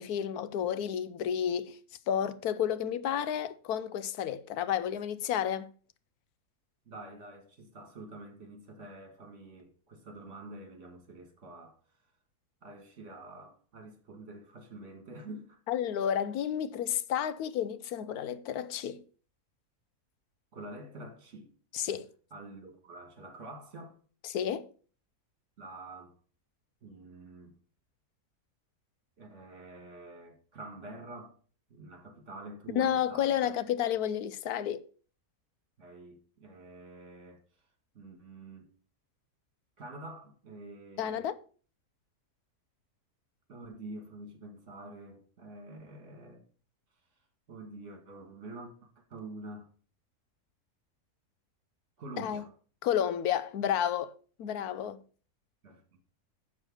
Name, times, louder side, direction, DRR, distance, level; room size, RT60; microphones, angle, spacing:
voice 1, 0.0-1.8 2.1-5.7 15.7-19.0 21.7-22.1 24.2-24.7 32.8-34.8 41.0-41.4 52.2-52.4 52.8-54.1 54.4-55.0, left 9 dB, 75° left, 1.1 m, -31 dB
voice 2, 6.9-11.8 12.6-15.6 20.5-21.5 22.3-24.0 25.6-26.2 26.8-27.6 29.2-31.4 31.7-33.5 35.8-37.4 37.9-38.7 39.8-41.3 43.5-46.4 47.5-49.7 52.0-52.5 55.6-55.8, right 2 dB, 50° right, 2.3 m, -47 dB
7.3 x 6.3 x 6.1 m
omnidirectional pair, 1.7 m